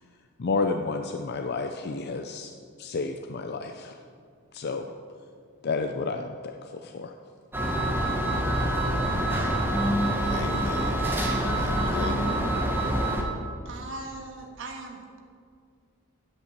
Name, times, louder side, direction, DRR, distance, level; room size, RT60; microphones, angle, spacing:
voice 1, 0.4-2.5 2.8-4.0 4.5-4.9 5.6-7.1, left 4 dB, 50° left, 5 dB, 0.5 m, -31 dB
sound 1, 7.5-13.2, right 1 dB, 10° right, 1.4 m, -26 dB
voice 2, 10.2-12.3, left 2 dB, 85° left, 7 dB, 1.0 m, -38 dB
voice 3, 13.6-15.2, right 2 dB, 65° right, 2 dB, 1.6 m, -39 dB
8.7 x 7.9 x 7.3 m, 2.2 s
head